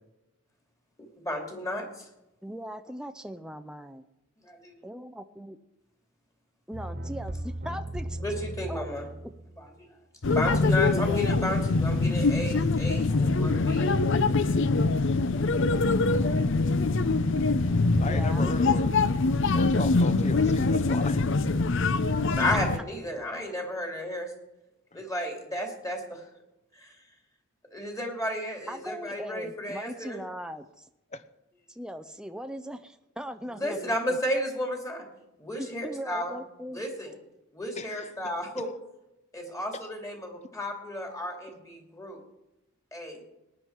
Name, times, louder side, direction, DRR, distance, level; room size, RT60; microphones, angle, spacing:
voice 1, 1.2-2.1 4.4-4.6 8.2-9.1 9.6-9.7 10.3-13.9 22.4-24.3 24.9-26.2 26.7-27.0 27.7-30.2 33.5-35.1 35.4-36.3 36.7-37.2 37.5-38.7 39.3-42.2 42.9-43.2, left 1 dB, 15° left, 2 dB, 2.7 m, -33 dB
voice 2, 2.4-4.0 4.8-5.6 6.7-8.2 8.7-8.9 10.5-10.8 11.0-11.6 12.9-13.2 16.1-17.2 17.6-18.7 28.7-30.9 31.7-34.2 35.6-36.9, equal, 5° right, 8 dB, 0.5 m, -40 dB
sound 1, 6.7-9.8, right 1 dB, 45° right, 1.3 m, -37 dB
sound 2, 10.2-22.8, left 3 dB, 60° left, 0.7 m, -24 dB
sound 3, 15.6-21.8, right 1 dB, 80° left, 1.9 m, -43 dB
voice 3, 18.0-18.9 19.5-21.2 24.9-25.0 31.1-31.2 37.8-38.1, left 2 dB, 35° left, 12 dB, 0.8 m, -36 dB
19.0 x 10.0 x 4.6 m, 0.92 s
head